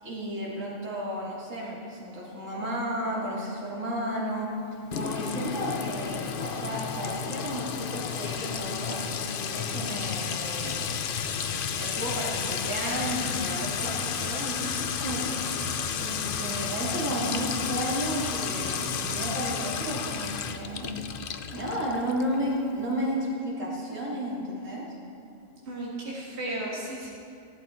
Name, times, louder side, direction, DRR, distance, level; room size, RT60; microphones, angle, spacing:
voice 1, 0.0-4.5 4.9-9.0 9.5-10.8 11.8-15.4 16.0-20.9 21.5-25.0, equal, 80° right, -5 dB, 3.2 m, -32 dB
Sink (filling or washing) / Trickle dribble / Fill (with liquid), 4.9-22.4, left 6 dB, 55° left, 0.7 m, -32 dB
voice 2, 25.7-27.1, right 1 dB, 55° right, -6 dB, 2.2 m, -34 dB
16.5 x 12.0 x 4.5 m, 2.5 s
omnidirectional pair, 1.3 m